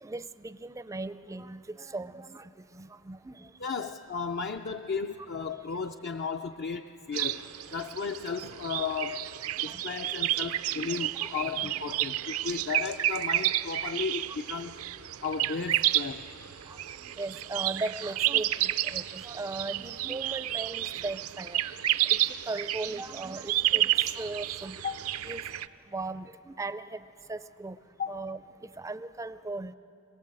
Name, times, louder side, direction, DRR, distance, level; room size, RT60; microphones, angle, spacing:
voice 1, 0.0-3.5 9.7-9.8 10.8-12.0 16.7-21.6 22.1-22.2 22.5-24.8 25.2-25.4 25.9-27.0 27.3-27.8 28.1-29.7, right 2 dB, 15° right, 13 dB, 0.4 m, -38 dB
voice 2, 3.6-9.3 9.6-14.8 15.2-16.3 24.8-25.0 28.0-28.2, left 5 dB, 50° left, 5 dB, 0.5 m, -34 dB
sound 1, 7.1-25.7, right 13 dB, 80° right, 0.5 m, -31 dB
26.5 x 18.5 x 7.7 m, 2.8 s
head